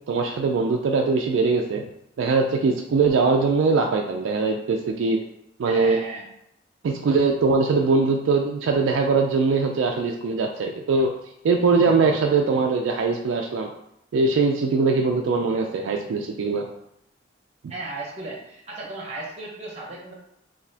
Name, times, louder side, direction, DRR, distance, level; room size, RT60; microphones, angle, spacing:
voice 1, 0.1-1.8 2.2-5.2 5.6-6.0 6.8-11.1 11.4-13.7 14.1-16.7, right 4 dB, 70° right, 2 dB, 0.3 m, -21 dB
voice 2, 5.6-6.3 17.7-20.1, right 2 dB, 30° right, -2 dB, 0.8 m, -35 dB
3.9 x 2.8 x 2.7 m, 0.79 s
head